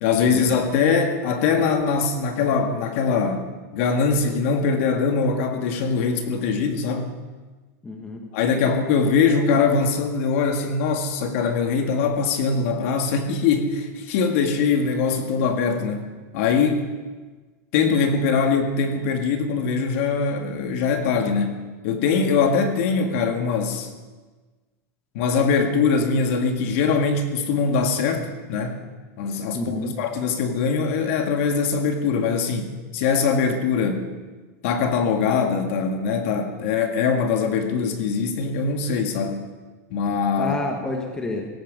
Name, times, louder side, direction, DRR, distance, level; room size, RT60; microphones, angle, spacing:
voice 1, 0.0-3.5 3.7-7.1 8.3-16.0 16.3-16.8 17.7-23.9 25.1-28.8 29.2-34.1 34.6-39.5 39.9-40.5, left 5 dB, 50° left, 5 dB, 1.9 m, -22 dB
voice 2, 7.8-8.2 29.5-29.9 40.4-41.5, left 2 dB, 10° left, 2 dB, 1.3 m, -29 dB
18.0 x 14.5 x 5.3 m, 1.3 s
supercardioid pair, 170°, 9 cm